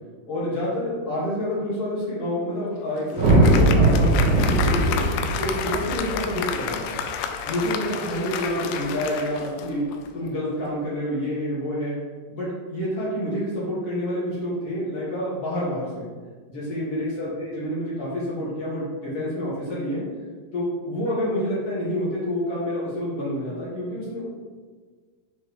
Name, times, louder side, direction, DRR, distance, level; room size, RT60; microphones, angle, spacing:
voice 1, 0.3-5.0 5.4-6.9 7.5-9.8 10.1-12.0 12.3-16.1 16.5-20.0 20.5-24.3, equal, 55° left, -8 dB, 1.7 m, -28 dB
Applause, 2.6-10.2, left 7 dB, 85° left, 2.2 m, -31 dB
sound 1, 3.2-7.6, right 1 dB, 85° right, 1.7 m, -20 dB
7.4 x 3.2 x 4.8 m, 1.5 s
omnidirectional pair, 4.9 m